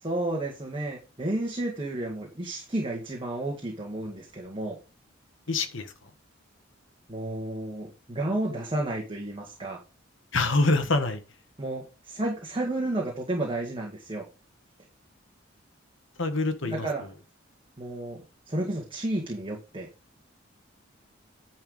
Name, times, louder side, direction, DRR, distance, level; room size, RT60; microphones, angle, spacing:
voice 1, 0.0-4.8 7.1-9.8 11.6-14.2 16.6-17.1 17.8-19.9, right 1 dB, 25° right, -1 dB, 1.9 m, -32 dB
voice 2, 5.5-5.9 10.3-11.2 16.2-16.9, left 2 dB, 70° left, 8 dB, 1.4 m, -25 dB
10.5 x 4.5 x 5.2 m, 0.31 s
head